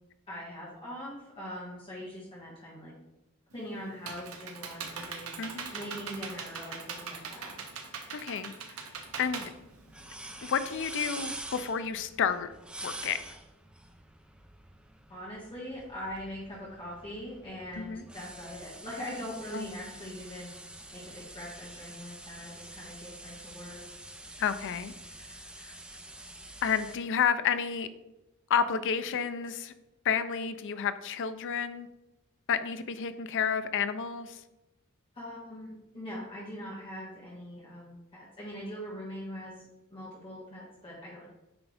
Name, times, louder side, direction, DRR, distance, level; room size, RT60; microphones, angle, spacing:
voice 1, 0.3-2.9 3.5-5.3 5.7-7.6 15.1-20.5 20.9-23.8 35.1-39.6 39.9-41.2, equal, 25° left, -7 dB, 1.6 m, -42 dB
Computer keyboard, 3.5-10.4, right 5 dB, 75° right, 0.8 m, -41 dB
voice 2, 5.4-5.7 8.1-8.5 9.2-9.5 10.4-12.5 12.8-13.2 17.8-18.0 19.5-19.7 24.4-24.9 25.6-25.7 26.6-27.9 28.5-29.7 30.0-31.9 32.5-34.4, left 7 dB, 60° left, 12 dB, 0.4 m, -30 dB
sound 1, 8.9-27.0, right 1 dB, 5° right, 0.4 m, -46 dB
8.7 x 3.6 x 3.4 m, 0.96 s
head